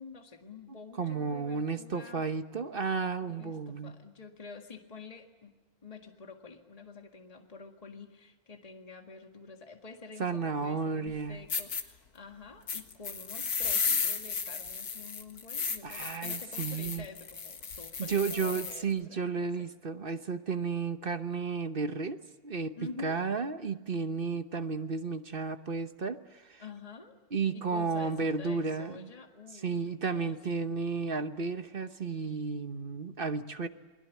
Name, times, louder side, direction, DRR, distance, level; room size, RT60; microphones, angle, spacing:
voice 1, 0.0-2.3 3.2-5.5 5.8-19.7 22.8-23.2 26.6-27.2 27.5-30.4, left 4 dB, 25° left, 4 dB, 1.9 m, -48 dB
voice 2, 1.0-3.9 10.2-11.4 15.8-17.1 18.0-22.8 23.0-26.6 27.3-29.1 29.6-33.7, right 4 dB, 40° right, 9 dB, 1.1 m, -33 dB
sound 1, 11.1-11.2 11.5-11.8 12.7-18.8, left 5 dB, 80° left, 2.2 m, -34 dB
29.0 x 21.5 x 8.3 m, 1.2 s
omnidirectional pair, 1.6 m